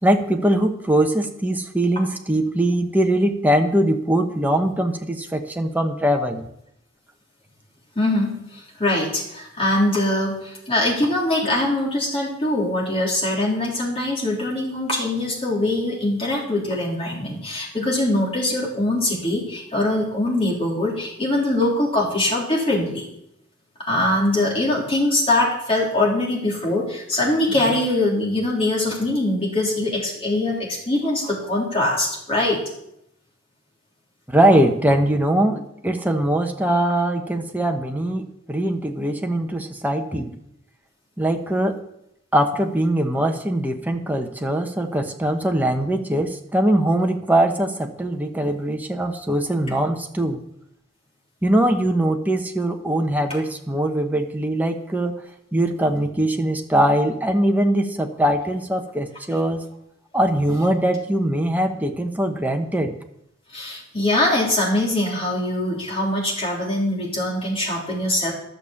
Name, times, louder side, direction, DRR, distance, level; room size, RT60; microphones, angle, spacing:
voice 1, 0.0-6.4 34.3-40.4 41.2-41.8 42.3-50.4 51.4-55.2 55.5-59.6 60.1-62.9, right 1 dB, 10° right, 3 dB, 1.0 m, -21 dB
voice 2, 8.0-23.1 23.9-32.6 63.5-68.3, left 1 dB, 30° left, -3 dB, 3.5 m, -22 dB
12.0 x 6.8 x 7.2 m, 0.78 s
head